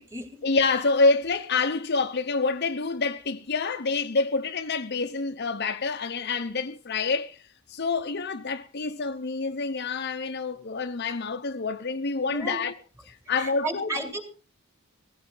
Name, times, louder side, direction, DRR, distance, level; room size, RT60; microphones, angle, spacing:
voice 1, 0.4-7.4 7.7-12.7 13.1-14.0, left 4 dB, 50° left, 0.8 m, -27 dB
voice 2, 12.3-12.6 13.4-14.2, right 2 dB, 10° right, 2.6 m, -33 dB
17.0 x 16.0 x 3.9 m
head